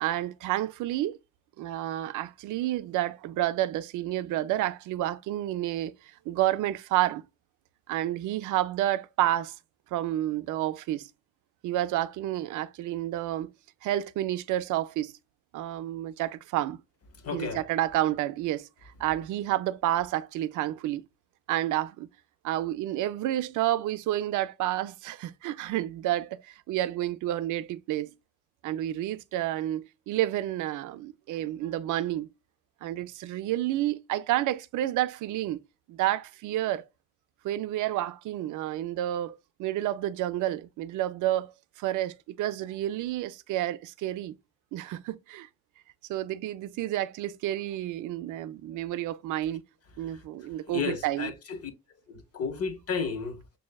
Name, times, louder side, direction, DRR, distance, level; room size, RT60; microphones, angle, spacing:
voice 1, 0.0-1.2 1.6-5.9 6.3-7.2 7.9-9.5 9.9-11.1 11.6-13.5 13.8-15.1 15.5-16.8 17.3-18.7 19.0-21.0 21.5-22.1 22.4-26.4 26.7-28.1 28.6-32.3 32.8-35.6 35.9-36.8 37.4-41.5 41.8-44.4 44.7-45.5 46.1-49.6 50.0-51.3, right 14 dB, 80° right, 0.5 m, -30 dB
voice 2, 17.2-17.6 50.7-51.7 52.1-53.4, left 5 dB, 50° left, 1.0 m, -33 dB
6.2 x 2.7 x 2.2 m
cardioid pair, 90°, 30 cm